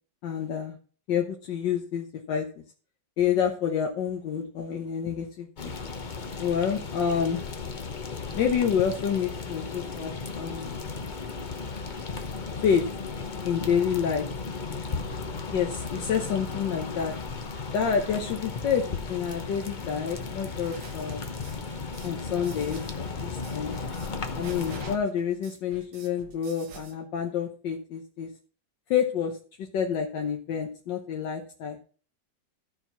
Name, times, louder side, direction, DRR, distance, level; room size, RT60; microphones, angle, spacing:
voice 1, 0.2-0.8 1.1-2.6 3.2-5.7 6.4-7.4 8.3-10.9 12.6-12.9 13.4-14.3 15.5-17.1 17.7-21.2 22.0-23.8 24.4-28.3 28.9-29.4 29.7-31.8, left 7 dB, 75° left, 1 dB, 1.6 m, -28 dB
sound 1, 5.6-25.0, left 4 dB, 35° left, 0.8 m, -35 dB
sound 2, 20.6-27.0, right 6 dB, 75° right, 1.9 m, -48 dB
13.0 x 4.6 x 5.5 m, 0.41 s
omnidirectional pair, 2.0 m